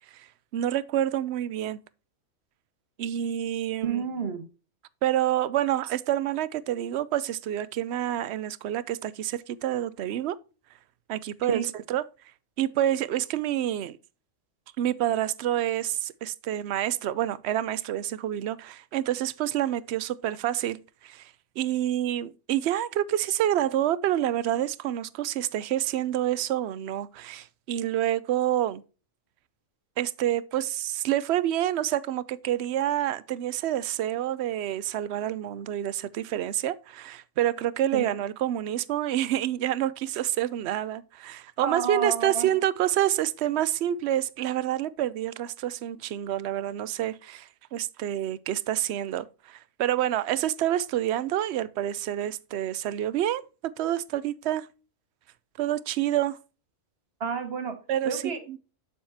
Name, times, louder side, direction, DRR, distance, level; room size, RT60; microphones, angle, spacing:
voice 1, 0.5-1.8 3.0-4.0 5.0-10.4 11.1-11.6 11.9-12.0 12.6-14.0 14.8-21.3 21.6-28.8 30.0-54.7 55.6-56.4 57.9-58.6, right 12 dB, 65° right, 0.7 m, -28 dB
voice 2, 3.8-4.4 11.5-11.6 37.9-38.1 41.6-42.5 57.2-57.8 58.0-58.4, right 6 dB, 50° right, 1.7 m, -30 dB
7.4 x 7.2 x 2.7 m
omnidirectional pair, 1.4 m